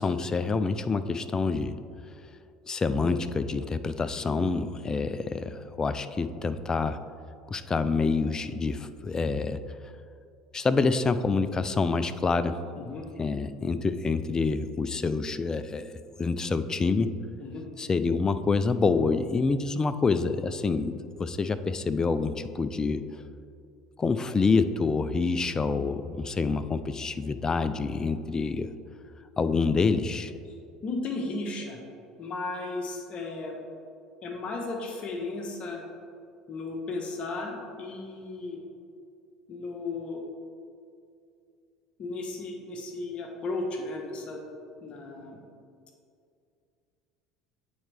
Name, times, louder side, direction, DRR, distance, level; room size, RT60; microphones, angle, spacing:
voice 1, 0.0-1.8 2.7-7.0 7.5-9.6 10.5-12.6 13.2-15.9 16.2-17.1 17.8-23.2 24.0-28.7 29.4-30.3, left 4 dB, 25° left, 12 dB, 0.4 m, -27 dB
voice 2, 12.8-13.1 17.4-17.7 30.8-31.8 32.2-33.6 34.2-35.8 36.5-38.6 39.5-40.2 42.0-44.4 44.8-45.4, left 3 dB, 40° left, 1 dB, 1.1 m, -35 dB
8.7 x 4.4 x 3.3 m, 2.4 s
hypercardioid pair, 70°, 3 cm